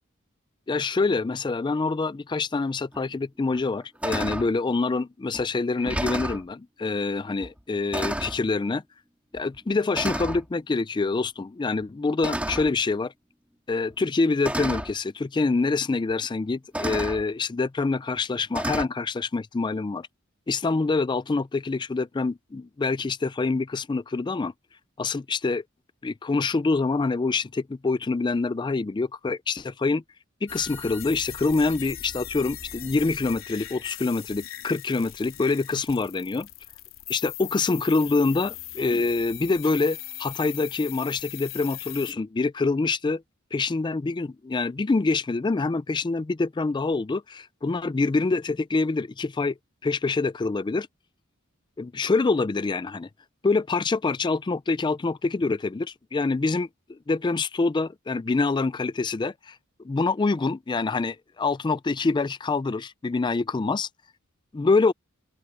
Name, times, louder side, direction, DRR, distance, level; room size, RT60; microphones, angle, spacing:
voice 1, 0.7-8.8 9.3-13.1 13.7-20.1 20.5-24.5 25.0-25.6 26.0-30.0 30.4-36.5 37.1-43.2 43.5-49.5 49.8-50.9 51.8-53.1 53.4-59.6 59.8-63.9 64.5-64.9, left 3 dB, 20° left, 0.3 m, -26 dB
sound 1, 2.9-3.0 3.5-3.7 4.0-4.5 5.3-5.4 5.8-6.4 7.4-7.6 7.9-8.4 9.3-9.6 9.9-10.4 12.2-12.8 13.9-14.0 14.4-14.9 16.1-16.2 16.7-17.2 18.5-18.9, right 1 dB, 5° right, 2.3 m, -30 dB
sound 2, 30.5-42.1, left 12 dB, 75° left, 3.9 m, -40 dB
open air
head